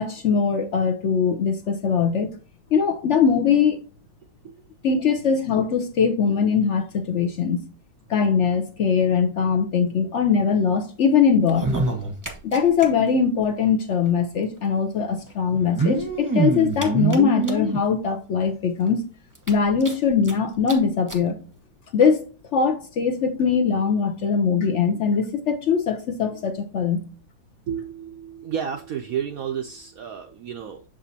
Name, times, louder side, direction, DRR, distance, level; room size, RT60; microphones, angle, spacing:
voice 1, 0.0-2.3 2.7-3.8 4.8-7.6 8.1-11.7 12.4-19.0 19.5-21.4 21.9-27.1, left 6 dB, 65° left, 0.7 m, -21 dB
sound 1, 11.4-12.9 13.1-13.2 13.4-13.5 14.6-14.7 15.5-17.8 18.4-18.5 18.9-19.0 19.3-20.3 20.7-20.8 21.1-21.2 22.0-22.1, right 3 dB, 15° right, 0.7 m, -25 dB
voice 2, 27.7-30.8, right 8 dB, 70° right, 0.8 m, -31 dB
6.9 x 5.1 x 2.7 m
omnidirectional pair, 2.0 m